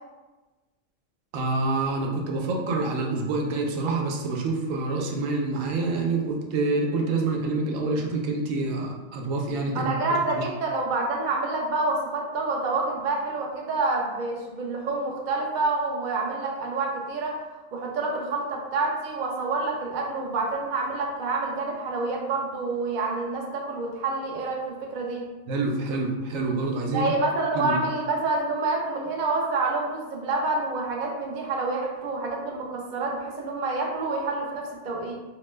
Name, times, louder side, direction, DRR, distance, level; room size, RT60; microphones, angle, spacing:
voice 1, 1.3-9.9 10.4-10.5 25.5-27.1 27.5-27.8, right 3 dB, 80° right, 0 dB, 1.0 m, -27 dB
voice 2, 9.7-17.4 17.7-25.3 26.9-35.1, right 3 dB, 60° right, -1 dB, 0.5 m, -28 dB
2.8 x 2.1 x 3.1 m, 1.2 s
omnidirectional pair, 1.3 m